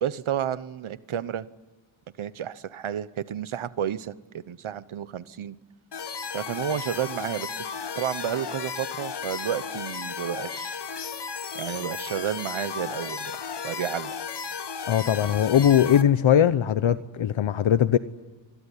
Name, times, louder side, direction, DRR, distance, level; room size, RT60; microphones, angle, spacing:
voice 1, 0.0-1.5 2.2-5.6 6.3-7.6 7.9-10.8 11.5-13.4 13.6-14.1, right 9 dB, 80° right, 1.1 m, -31 dB
sound 1, 5.9-16.0, left 6 dB, 55° left, 1.4 m, -34 dB
voice 2, 14.9-18.0, left 9 dB, 75° left, 0.9 m, -20 dB
27.0 x 21.0 x 9.9 m
wide cardioid pair, 135°, 48 cm